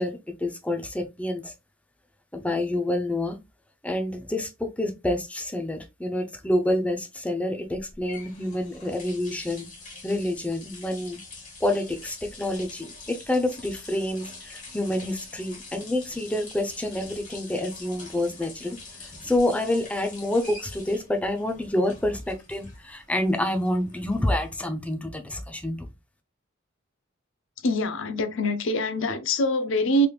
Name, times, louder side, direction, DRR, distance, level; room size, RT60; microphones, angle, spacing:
voice 1, 0.0-1.5 2.3-3.4 3.8-9.7 10.0-11.2 11.6-25.9, left 1 dB, 5° left, 0.6 m, -28 dB
sound 1, 7.8-24.8, left 3 dB, 40° left, 1.8 m, -45 dB
voice 2, 27.6-30.1, left 1 dB, 65° left, 0.6 m, -24 dB
3.4 x 3.0 x 2.4 m
head